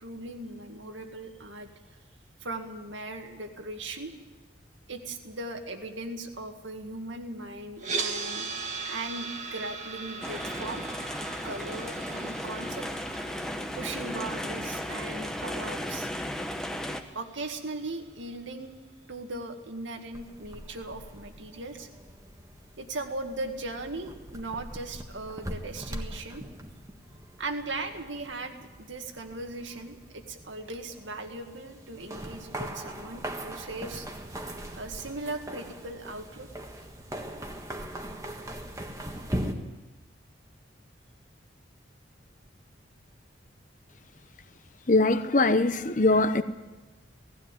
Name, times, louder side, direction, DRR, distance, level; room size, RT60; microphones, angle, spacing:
voice 1, 0.0-1.7 2.4-4.1 4.9-8.5 8.8-10.8 11.4-12.9 13.7-16.1 17.1-18.7 19.1-21.9 22.8-26.4 27.4-34.1 34.8-36.5, right 2 dB, 80° right, 2.1 m, -38 dB
sound 1, 7.8-17.9, right 4 dB, 40° right, 1.9 m, -39 dB
sound 2, 10.2-17.0, left 1 dB, 5° left, 1.0 m, -35 dB
sound 3, 20.1-39.5, right 1 dB, 15° right, 1.5 m, -41 dB
voice 2, 44.9-46.4, left 2 dB, 40° left, 0.9 m, -22 dB
18.5 x 15.5 x 9.2 m
head